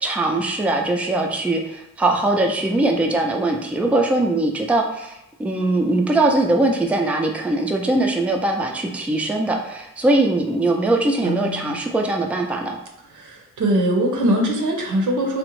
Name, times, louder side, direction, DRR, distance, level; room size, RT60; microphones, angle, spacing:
voice 1, 0.0-12.8, right 2 dB, 5° right, 2 dB, 0.3 m, -21 dB
voice 2, 11.2-11.7 13.2-15.4, right 1 dB, 90° right, 2 dB, 0.6 m, -22 dB
3.6 x 2.1 x 3.0 m, 0.84 s
wide cardioid pair, 95°, 30 cm